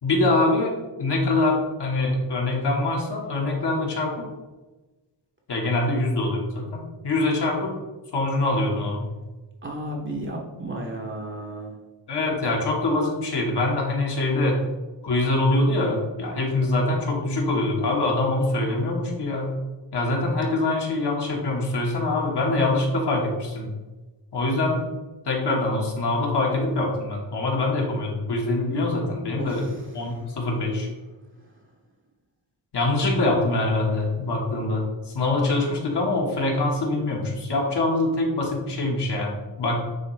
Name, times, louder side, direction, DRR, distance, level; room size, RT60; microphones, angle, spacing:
voice 1, 0.0-1.5 1.8-4.1 5.5-7.7 8.1-9.1 12.1-14.6 15.0-19.6 19.9-23.7 24.3-24.8 25.2-29.7 29.9-30.9 32.7-39.8, left 2 dB, 60° left, -1 dB, 1.5 m, -24 dB
voice 2, 9.6-11.7 29.4-29.8, right 1 dB, 25° right, -1 dB, 0.7 m, -33 dB
9.3 x 3.6 x 3.2 m, 1.2 s
wide cardioid pair, 170°, 45 cm